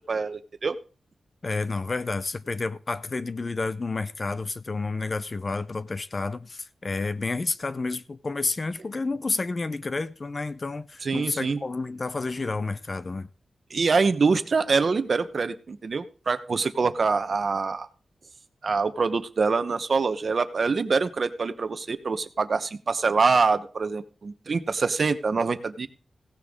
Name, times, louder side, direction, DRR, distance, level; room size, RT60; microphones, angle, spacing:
voice 1, 0.1-0.8 11.0-11.6 13.7-17.9 18.6-25.9, right 4 dB, 50° right, 0.9 m, -25 dB
voice 2, 1.4-13.3, left 3 dB, 35° left, 0.6 m, -30 dB
16.5 x 9.9 x 3.7 m
wide cardioid pair, 170°, 0 cm